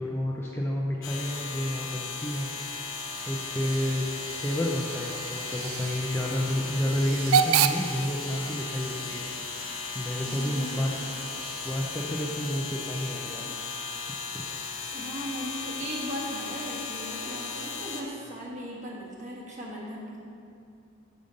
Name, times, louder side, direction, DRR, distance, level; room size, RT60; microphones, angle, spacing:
voice 1, 0.0-2.5 2.7-2.9 3.3-9.3 9.9-10.9 11.6-13.5 14.3-14.6, left 1 dB, 10° left, -3 dB, 0.4 m, -30 dB
sound 1, 1.0-18.0, left 4 dB, 65° left, 1.0 m, -36 dB
Hiss / Train / Alarm, 2.6-12.2, right 8 dB, 75° right, 0.3 m, -33 dB
voice 2, 10.2-10.8 14.9-20.3, equal, 35° right, -4 dB, 1.3 m, -37 dB
5.4 x 5.1 x 6.5 m, 2.6 s
head